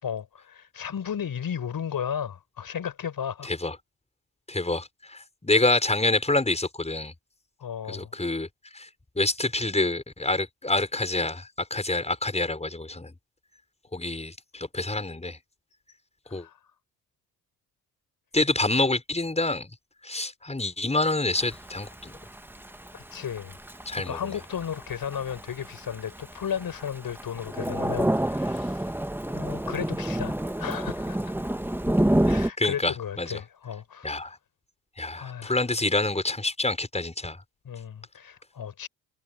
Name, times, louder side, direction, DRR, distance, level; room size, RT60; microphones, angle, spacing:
voice 1, 0.0-3.5 7.6-8.1 16.3-16.6 22.9-23.6 24.0-28.9 29.2-31.3 32.2-34.2 35.2-35.6 37.6-38.9, left 8 dB, 50° left, 5.5 m, -34 dB
voice 2, 3.4-3.8 4.5-7.1 7.9-8.5 8.7-8.9 9.2-13.1 13.9-15.4 16.3-16.5 18.3-19.7 20.0-22.2 23.9-24.2 32.6-33.4 34.0-34.4 35.0-37.4, left 2 dB, 15° left, 5.8 m, -27 dB
Thunder / Rain, 21.4-32.5, right 1 dB, 5° right, 2.0 m, -29 dB
hypercardioid pair, 50°, 44 cm